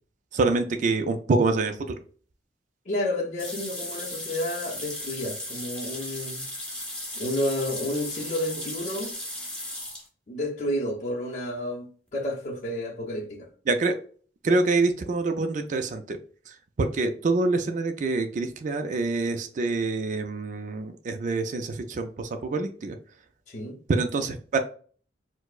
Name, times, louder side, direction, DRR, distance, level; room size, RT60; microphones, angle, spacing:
voice 1, 0.3-2.0 13.7-14.0 14.4-16.2 16.8-23.0 23.9-24.6, right 3 dB, 45° right, 0.3 m, -26 dB
voice 2, 2.9-6.4 7.1-9.1 10.3-13.5 23.5-23.8, left 1 dB, 45° left, 0.6 m, -30 dB
sound 1, 3.4-10.1, left 1 dB, 5° left, 0.9 m, -36 dB
4.3 x 2.0 x 2.4 m
head